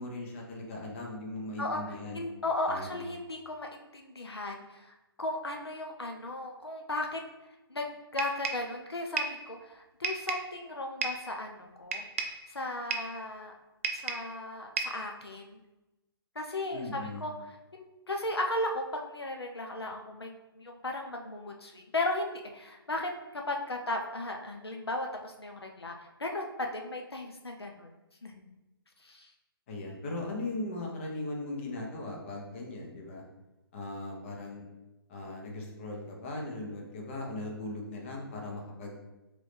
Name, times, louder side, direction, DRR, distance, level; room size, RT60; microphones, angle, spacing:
voice 1, 0.0-2.2 2.7-3.0 16.7-17.2 29.7-33.2 33.7-34.6 35.1-39.0, left 2 dB, 30° left, -1 dB, 0.8 m, -38 dB
voice 2, 1.6-7.2 7.7-7.9 8.1-12.0 12.5-13.5 13.9-15.6 16.4-27.9 28.2-28.5 29.0-29.3, left 2 dB, 85° left, 2 dB, 0.5 m, -36 dB
sound 1, 8.2-8.7 9.2-9.4 10.0-10.5 11.0-11.3 11.9-12.4 12.9-13.2 13.8-14.3 14.8-15.1, right 4 dB, 35° right, 0.4 m, -33 dB
3.7 x 3.2 x 3.4 m, 1.0 s
figure-of-eight pair, 135°, 13 cm